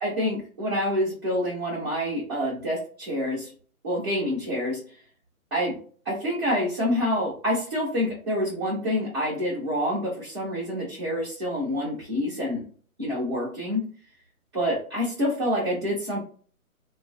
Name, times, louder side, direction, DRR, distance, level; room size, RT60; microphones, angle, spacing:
voice 1, 0.0-3.5 3.8-4.8 5.5-5.8 6.0-12.6 13.0-13.9 14.5-16.2, equal, 20° right, -9 dB, 0.6 m, -27 dB
2.9 x 2.3 x 2.4 m, 0.42 s
hypercardioid pair, 170°, 43 cm